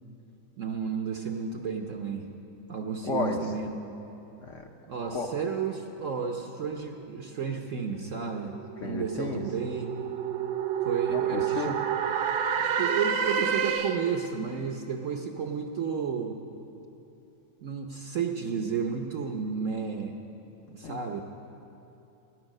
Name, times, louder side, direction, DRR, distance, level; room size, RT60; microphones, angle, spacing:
voice 1, 0.6-2.3 2.7-3.8 4.9-8.6 8.8-9.9 10.8-11.8 12.6-16.4 17.6-20.2 20.7-21.2, right 6 dB, 60° right, 3 dB, 0.9 m, -32 dB
voice 2, 3.0-3.4 4.4-4.7 5.1-5.3 8.8-9.5 11.1-11.8 20.8-21.2, left 4 dB, 55° left, 4 dB, 0.9 m, -33 dB
sound 1, 8.0-14.2, right 8 dB, 75° right, 1.4 m, -29 dB
19.0 x 10.5 x 6.5 m, 3.0 s
omnidirectional pair, 2.2 m